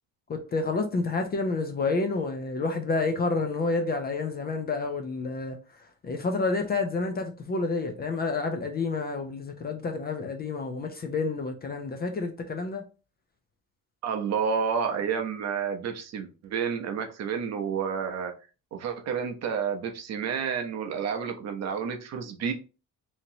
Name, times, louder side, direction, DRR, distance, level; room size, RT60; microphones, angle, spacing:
voice 1, 0.3-5.6 6.0-12.8, left 3 dB, 30° left, 0.4 m, -29 dB
voice 2, 14.0-18.3 18.7-22.5, right 6 dB, 50° right, 0.6 m, -30 dB
2.9 x 2.8 x 2.6 m
cardioid pair, 155°, 34 cm